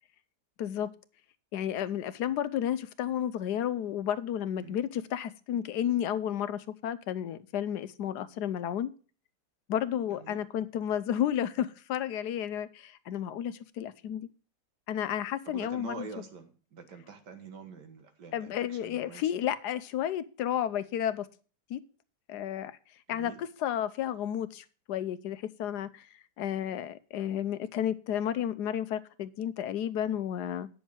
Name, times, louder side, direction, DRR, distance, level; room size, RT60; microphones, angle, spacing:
voice 1, 0.6-0.9 1.5-8.9 9.7-14.3 14.9-16.1 18.3-21.3 21.7-21.8 22.3-22.8 23.1-26.1 26.4-30.7, left 10 dB, 75° left, 14 dB, 1.2 m, -32 dB
voice 2, 4.6-4.9 10.1-10.4 15.5-19.2 23.1-23.4, right 5 dB, 80° right, 6 dB, 2.0 m, -46 dB
9.4 x 6.4 x 6.1 m, 0.39 s
omnidirectional pair, 1.8 m